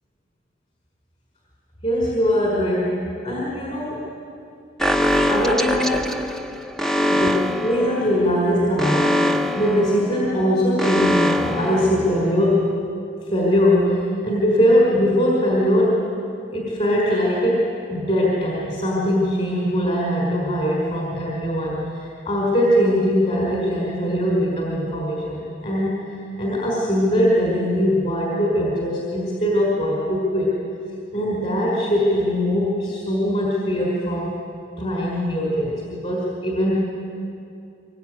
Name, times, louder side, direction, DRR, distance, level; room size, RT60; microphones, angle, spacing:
voice 1, 1.8-4.1 5.3-6.2 7.1-12.7 13.3-16.1 16.5-26.1 26.4-30.6 31.1-34.4 34.8-36.8, equal, 40° left, -4 dB, 5.0 m, -21 dB
Alarm, 4.8-12.6, equal, ahead, 0.9 m, -23 dB
24.5 x 22.0 x 9.5 m, 2.6 s
head